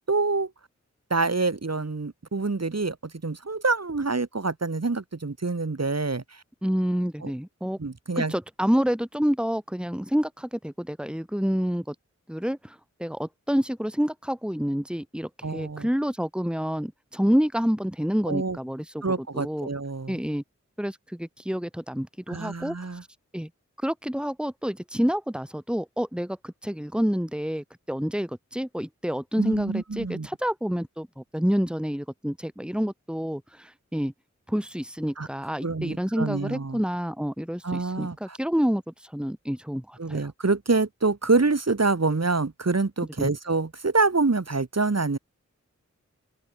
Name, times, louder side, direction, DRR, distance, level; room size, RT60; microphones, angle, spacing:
voice 1, 0.1-0.5 1.1-6.4 7.2-7.3 7.8-8.3 15.4-15.9 18.3-18.6 19.0-20.2 22.3-23.0 29.4-30.3 35.2-35.3 35.6-36.8 37.6-38.4 40.0-45.2, right 3 dB, 60° right, 7.0 m, -26 dB
voice 2, 6.6-7.8 8.2-12.0 12.3-19.0 19.3-19.7 20.1-20.4 20.8-22.8 23.3-23.5 23.8-34.1 34.5-40.2 43.2-43.3, equal, 5° right, 5.5 m, -28 dB
open air
wide cardioid pair, 80°, 30 cm